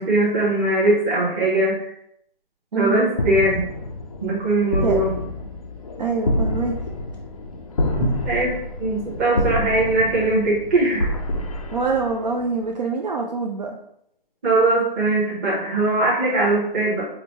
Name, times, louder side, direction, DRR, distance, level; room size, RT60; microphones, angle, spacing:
voice 1, 0.0-1.9 2.7-3.6 4.2-5.1 8.0-11.1 14.4-17.0, right 2 dB, 15° right, -5 dB, 0.8 m, -20 dB
voice 2, 2.7-3.1 4.8-5.0 6.0-6.7 11.7-13.8, right 4 dB, 45° right, 1 dB, 0.4 m, -25 dB
sound 1, 3.1-12.6, left 1 dB, 40° left, 0.4 m, -28 dB
4.9 x 2.1 x 3.1 m, 0.72 s
hypercardioid pair, 160°, 29 cm